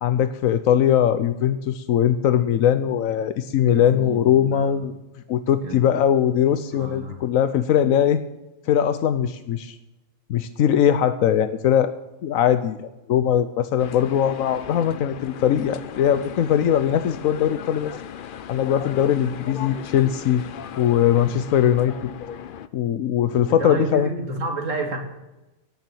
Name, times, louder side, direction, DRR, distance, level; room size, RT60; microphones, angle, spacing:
voice 1, 0.0-4.9 5.3-8.2 8.7-9.8 10.3-11.9 12.2-17.9 18.5-20.4 20.8-22.1 22.7-24.1, left 9 dB, 80° left, 11 dB, 1.1 m, -20 dB
voice 2, 3.6-4.9 5.6-5.8 6.7-7.2 23.5-25.0, right 2 dB, 70° right, 4 dB, 2.6 m, -30 dB
sound 1, 13.8-22.7, left 9 dB, 55° left, 0.6 m, -37 dB
17.5 x 7.1 x 7.8 m, 1.0 s
omnidirectional pair, 1.4 m